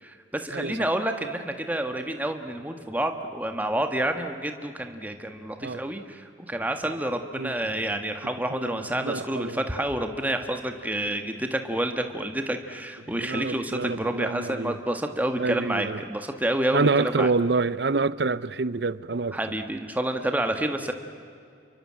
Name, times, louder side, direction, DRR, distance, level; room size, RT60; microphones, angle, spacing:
voice 1, 0.0-17.3 19.3-20.9, right 1 dB, 10° right, 1.7 m, -29 dB
voice 2, 8.5-9.6 13.1-14.8 15.4-16.0 16.7-19.4, right 3 dB, 60° right, 0.6 m, -27 dB
29.5 x 24.0 x 7.7 m
head